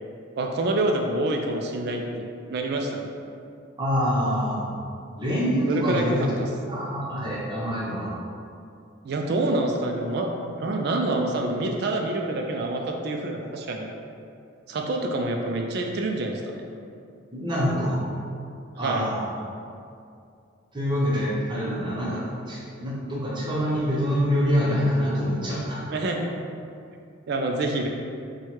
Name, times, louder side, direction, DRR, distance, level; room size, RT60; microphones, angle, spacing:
voice 1, 0.4-3.1 5.7-6.5 9.0-13.9 14.7-16.7 18.8-19.2 25.9-26.3 27.3-27.9, right 2 dB, 50° right, 2 dB, 0.3 m, -27 dB
voice 2, 3.8-4.6 5.2-6.3 6.7-8.1 17.3-18.0 18.8-19.4 20.7-25.8, equal, 20° right, -7 dB, 0.8 m, -25 dB
4.5 x 2.3 x 4.4 m, 2.4 s
head